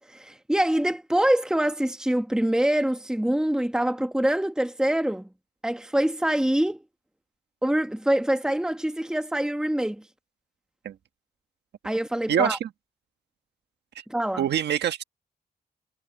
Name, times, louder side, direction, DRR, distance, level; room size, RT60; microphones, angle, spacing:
voice 1, 0.1-5.3 5.6-6.8 7.6-10.0 11.8-12.6 14.1-14.4, right 1 dB, 5° right, 1.4 m, -25 dB
voice 2, 12.3-12.7 14.4-15.0, right 9 dB, 80° right, 1.5 m, -24 dB
cardioid pair, 85°, 17 cm